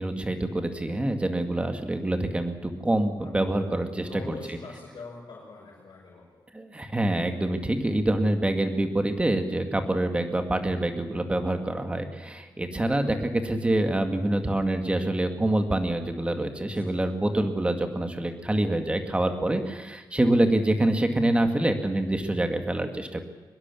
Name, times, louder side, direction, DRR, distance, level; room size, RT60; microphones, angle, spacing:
voice 1, 0.0-4.6 6.5-23.2, right 1 dB, 15° right, 6 dB, 2.0 m, -26 dB
voice 2, 4.1-6.4 8.2-8.3 16.6-16.9, left 3 dB, 60° left, -4 dB, 5.9 m, -43 dB
23.5 x 21.5 x 7.1 m, 1.3 s
wide cardioid pair, 145°, 8 cm